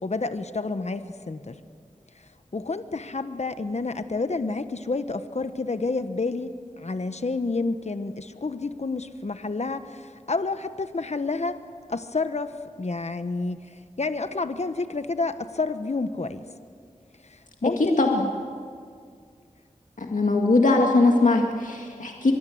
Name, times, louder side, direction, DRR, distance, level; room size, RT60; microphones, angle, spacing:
voice 1, 0.0-1.6 2.5-11.6 11.9-13.6 14.0-16.4 17.6-18.3, left 3 dB, 55° left, 10 dB, 1.1 m, -29 dB
voice 2, 20.0-22.3, left 2 dB, 70° left, 1 dB, 1.9 m, -20 dB
23.5 x 23.5 x 7.9 m, 2.1 s
wide cardioid pair, 45°, 13 cm